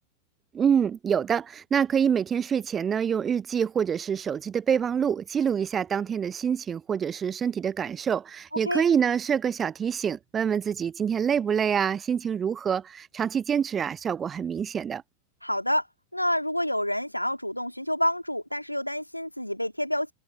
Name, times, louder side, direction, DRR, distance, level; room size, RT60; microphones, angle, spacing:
voice 1, 0.5-15.0, right 7 dB, 20° right, 0.7 m, -26 dB
voice 2, 15.4-15.9 16.1-20.1, left 1 dB, 90° left, 2.5 m, -28 dB
figure-of-eight pair, 90°, 0 cm